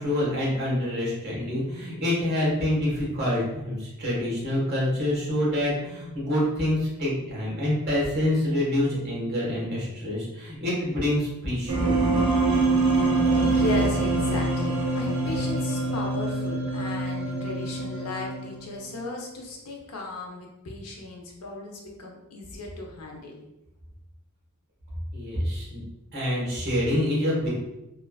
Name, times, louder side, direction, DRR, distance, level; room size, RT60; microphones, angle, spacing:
voice 1, 0.0-12.2 25.1-25.8 26.1-27.5, left 1 dB, 50° right, -6 dB, 1.3 m, -26 dB
sound 1, 11.7-18.7, right 2 dB, 80° right, 0.8 m, -24 dB
voice 2, 13.3-23.4, left 2 dB, 85° left, 0 dB, 0.7 m, -36 dB
3.2 x 2.3 x 2.3 m, 0.95 s
head